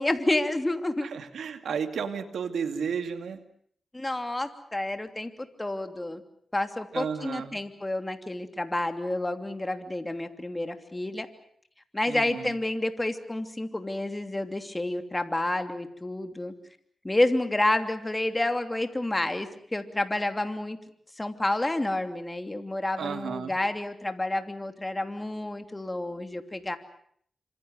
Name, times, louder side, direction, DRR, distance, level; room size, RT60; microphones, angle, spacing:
voice 1, 0.0-1.1 3.9-6.2 6.5-11.3 11.9-16.5 17.0-20.8 21.2-26.8, left 1 dB, 20° left, 7 dB, 3.0 m, -29 dB
voice 2, 1.0-3.4 6.9-7.6 12.1-12.5 23.0-23.5, right 6 dB, 90° right, 8 dB, 2.3 m, -33 dB
28.0 x 26.0 x 6.6 m, 0.63 s
cardioid pair, 80°, 0 cm